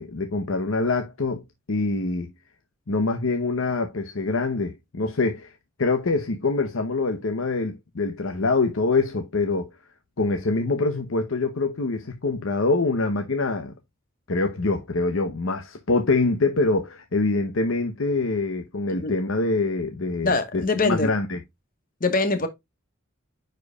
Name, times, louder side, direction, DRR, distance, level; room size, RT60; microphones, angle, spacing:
voice 1, 0.0-1.4 1.7-2.3 2.9-5.5 5.8-9.7 10.2-13.7 14.3-21.4, left 3 dB, 75° left, 0.8 m, -25 dB
voice 2, 20.2-21.1 22.0-22.5, left 3 dB, 45° left, 1.2 m, -23 dB
9.6 x 4.6 x 2.2 m
head